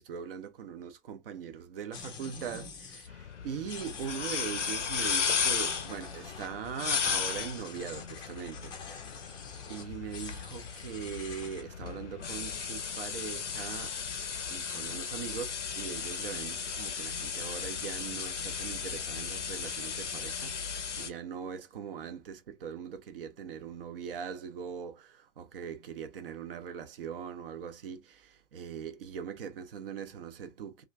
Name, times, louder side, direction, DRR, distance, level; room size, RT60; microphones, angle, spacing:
voice 1, 0.0-8.8 9.7-14.0 14.5-30.8, right 7 dB, 50° right, 0.7 m, -41 dB
sound 1, 1.9-3.1 3.6-6.5 6.8-11.6, left 5 dB, 15° left, 0.5 m, -46 dB
sound 2, 3.1-21.1, left 6 dB, 80° left, 0.6 m, -35 dB
2.9 x 2.4 x 2.6 m
figure-of-eight pair, 105°, 36 cm